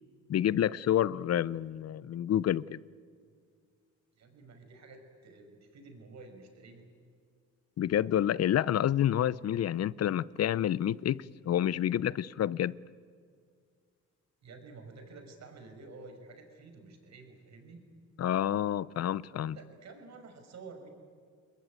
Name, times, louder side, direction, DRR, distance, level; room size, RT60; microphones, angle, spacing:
voice 1, 0.3-2.8 7.8-12.7 18.2-19.6, left 11 dB, 55° left, 0.7 m, -28 dB
voice 2, 4.2-6.9 9.2-9.5 14.4-17.9 19.3-20.9, right 3 dB, 60° right, 5.8 m, -51 dB
29.5 x 21.0 x 9.3 m
cardioid pair, 90°, 30 cm